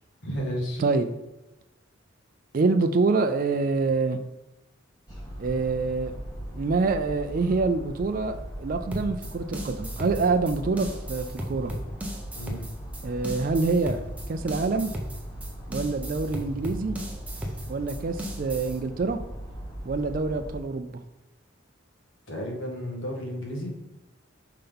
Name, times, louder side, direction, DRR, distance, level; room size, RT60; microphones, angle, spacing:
voice 1, 0.2-0.9 12.3-12.7 22.3-23.7, equal, 70° left, -1 dB, 1.7 m, -32 dB
voice 2, 0.8-1.1 2.5-4.2 5.4-6.1 6.5-11.7 13.0-14.0 14.3-14.9 15.7-16.9 17.7-19.2 19.8-21.0, right 3 dB, 45° right, 7 dB, 0.4 m, -26 dB
sound 1, 5.1-20.6, equal, 20° left, 1.6 m, -39 dB
sound 2, 8.9-18.8, equal, 5° right, 0.8 m, -36 dB
5.6 x 3.7 x 5.2 m, 0.95 s
head